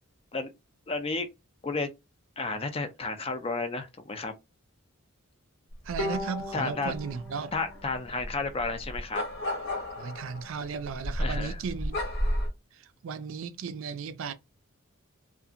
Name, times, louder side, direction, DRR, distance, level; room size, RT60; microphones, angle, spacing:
voice 1, 0.9-1.3 1.6-1.9 2.4-4.3 6.5-6.9 7.5-9.2 11.2-11.6, left 3 dB, 25° left, 0.4 m, -32 dB
voice 2, 5.8-7.5 10.0-12.0 12.7-14.3, right 5 dB, 65° right, 0.4 m, -35 dB
sound 1, 5.9-12.5, equal, 55° left, 0.9 m, -34 dB
Bowed string instrument, 6.0-9.3, left 1 dB, 85° left, 1.1 m, -39 dB
2.7 x 2.4 x 2.5 m
head